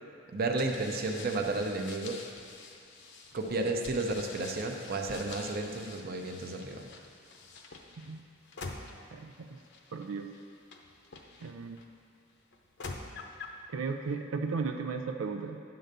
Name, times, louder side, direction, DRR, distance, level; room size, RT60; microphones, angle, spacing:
voice 1, 0.3-2.2 3.3-6.9, right 2 dB, 50° right, 3 dB, 0.7 m, -32 dB
sound 1, 0.6-11.8 12.5-13.6, left 4 dB, 60° left, 0.8 m, -47 dB
voice 2, 8.0-8.3 9.1-9.6 9.9-10.3 11.4-11.8 13.7-15.6, right 4 dB, 90° right, 4 dB, 0.5 m, -35 dB
10.0 x 3.9 x 6.7 m, 2.6 s
head